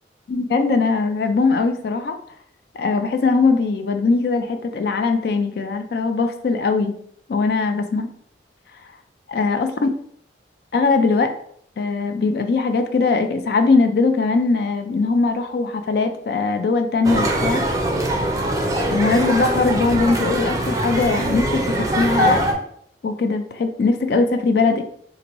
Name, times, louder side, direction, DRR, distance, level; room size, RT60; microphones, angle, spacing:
voice 1, 0.3-2.1 2.7-7.0 7.3-8.1 9.3-9.9 10.7-11.3 11.8-17.6 18.9-22.5 23.0-24.8, left 4 dB, 60° left, 7 dB, 0.3 m, -20 dB
sound 1, 17.0-22.5, right 1 dB, 20° right, 0.5 m, -22 dB
4.0 x 2.6 x 2.9 m, 0.64 s
head